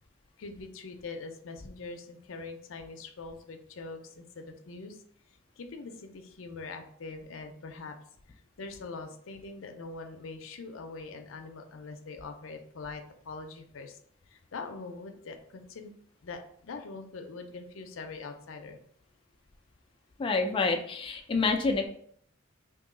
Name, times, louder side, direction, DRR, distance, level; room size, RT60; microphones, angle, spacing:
voice 1, 0.4-5.0 5.3-8.0 8.3-14.0 14.3-15.9 16.2-18.8, left 3 dB, 90° left, 5 dB, 0.5 m, -43 dB
voice 2, 20.2-21.9, left 3 dB, 25° left, 3 dB, 0.3 m, -27 dB
3.0 x 2.6 x 3.7 m, 0.64 s
head